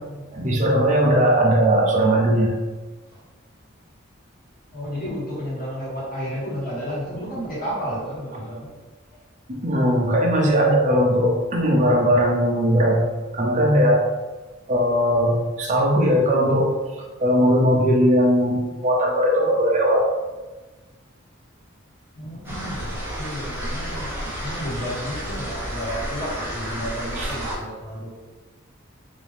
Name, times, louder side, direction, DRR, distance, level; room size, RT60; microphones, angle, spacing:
voice 1, 0.3-2.5 9.5-13.0 13.3-14.1 14.7-16.7 17.2-20.1 27.2-27.3, equal, 40° right, -1 dB, 0.8 m, -19 dB
voice 2, 4.7-8.7 22.1-24.1 24.4-28.1, equal, 45° left, -5 dB, 1.4 m, -31 dB
sound 1, 22.4-27.6, equal, 10° right, 0.9 m, -31 dB
3.7 x 2.7 x 3.4 m, 1.2 s
head